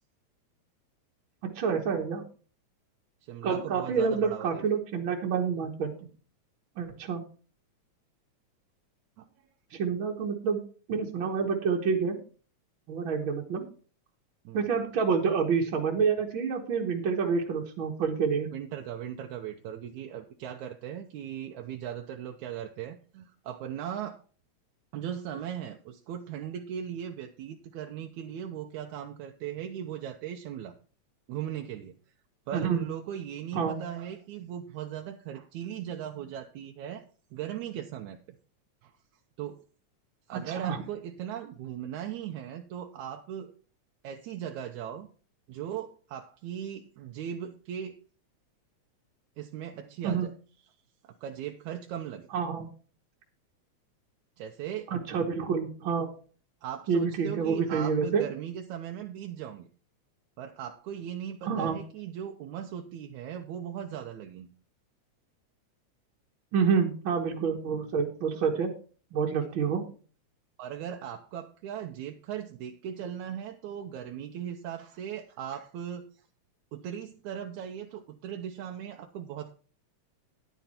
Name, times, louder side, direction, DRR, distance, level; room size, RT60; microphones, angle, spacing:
voice 1, 1.4-2.2 3.4-5.9 6.8-7.2 9.7-10.6 10.9-12.2 12.9-13.6 14.5-18.5 32.5-32.8 33.5-33.8 40.3-40.8 50.0-50.3 52.3-52.7 54.9-56.1 56.9-58.3 61.4-61.8 66.5-68.7 69.1-69.8, right 6 dB, 50° right, 0 dB, 1.8 m, -28 dB
voice 2, 3.2-4.7 9.2-9.3 14.5-14.7 18.5-24.2 24.9-30.8 31.3-32.0 32.5-37.1 37.3-38.2 38.8-38.9 39.4-39.6 40.3-43.5 44.0-45.1 45.5-48.0 49.4-50.3 51.0-52.3 54.4-54.9 56.6-59.7 60.4-64.5 70.6-76.1 76.7-79.5, right 9 dB, 80° right, 3 dB, 2.2 m, -38 dB
10.5 x 9.3 x 4.3 m, 0.39 s
omnidirectional pair, 3.3 m